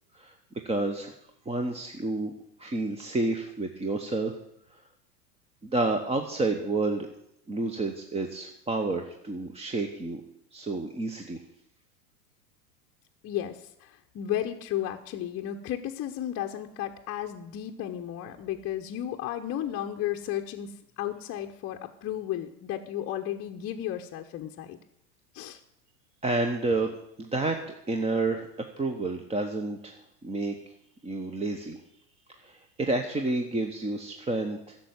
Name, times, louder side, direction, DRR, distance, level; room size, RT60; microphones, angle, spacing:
voice 1, 0.6-1.1 1.5-2.3 2.6-4.4 4.7-4.8 5.6-7.1 7.5-10.2 10.5-11.4 26.2-30.6 31.0-31.8 32.3-34.8, right 2 dB, 15° right, 5 dB, 1.0 m, -30 dB
voice 2, 13.2-24.8 25.3-25.6, left 11 dB, 30° left, 2 dB, 0.9 m, -34 dB
11.5 x 7.0 x 9.3 m, 0.78 s
hypercardioid pair, 95°, 48 cm